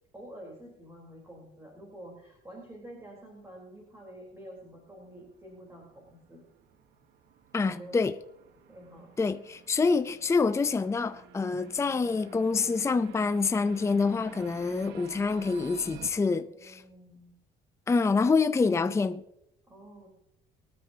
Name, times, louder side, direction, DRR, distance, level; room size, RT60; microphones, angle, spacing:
voice 1, 0.1-6.4 7.6-8.0 8.7-9.1 16.6-17.3 19.7-20.1, right 1 dB, 15° right, 3.9 m, -48 dB
sound 1, 4.6-16.1, right 9 dB, 80° right, 1.2 m, -51 dB
voice 2, 7.5-8.1 9.2-16.8 17.9-19.2, left 4 dB, 15° left, 0.6 m, -26 dB
23.5 x 9.6 x 2.8 m
cardioid pair, 110°, 17 cm